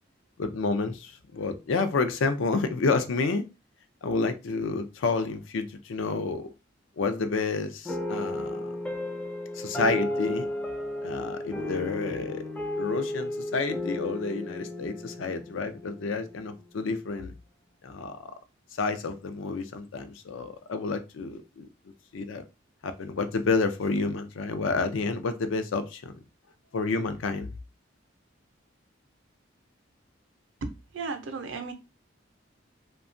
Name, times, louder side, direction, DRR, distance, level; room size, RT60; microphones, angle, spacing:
voice 1, 0.4-3.4 4.0-6.5 7.0-8.7 9.5-10.5 11.0-12.4 12.8-17.3 17.8-18.3 18.8-21.7 22.1-22.4 22.8-26.2 26.7-27.5, left 4 dB, 85° left, 0.4 m, -29 dB
sound 1, 7.9-16.4, left 1 dB, 5° left, 0.4 m, -33 dB
voice 2, 30.6-31.7, right 4 dB, 70° right, 0.5 m, -35 dB
2.7 x 2.2 x 2.5 m
head